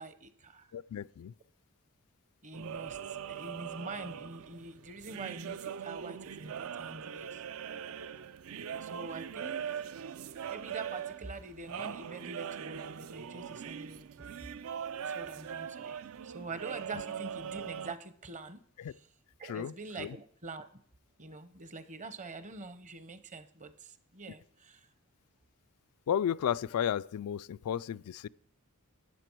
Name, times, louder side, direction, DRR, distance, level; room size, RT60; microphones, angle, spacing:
voice 1, 0.0-0.7 2.4-7.4 8.8-10.0 10.3-14.1 15.0-18.6 19.4-20.7 21.2-24.9, right 3 dB, 35° right, 0.8 m, -45 dB
voice 2, 0.7-1.3 18.8-18.9 19.4-20.2 26.1-28.3, left 9 dB, 80° left, 0.3 m, -33 dB
sound 1, 2.5-17.9, right 8 dB, 65° right, 0.4 m, -41 dB
12.5 x 8.5 x 4.5 m
head